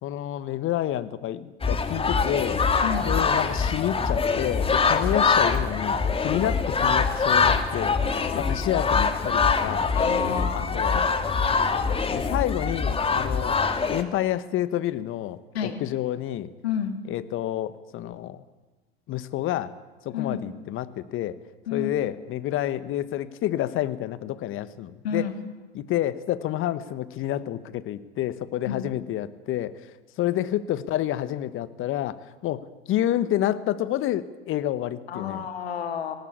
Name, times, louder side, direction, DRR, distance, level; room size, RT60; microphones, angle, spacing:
voice 1, 0.0-2.6 3.0-8.0 8.3-9.9 10.5-11.1 12.0-13.5 13.9-16.5 17.1-18.4 19.1-19.7 20.0-21.4 21.7-25.3 25.7-29.8 30.2-35.4, left 12 dB, 40° left, 14 dB, 1.4 m, -29 dB
sound 1, 1.6-14.0, left 5 dB, 15° left, 2.0 m, -24 dB
voice 2, 8.1-8.9 9.9-10.8 15.5-15.8 16.6-17.0 20.1-20.4 21.7-21.9 25.0-25.3 28.6-28.9 35.1-36.2, left 7 dB, 75° left, 6 dB, 2.8 m, -30 dB
20.0 x 18.5 x 8.5 m, 1.2 s
hypercardioid pair, 85°, 31 cm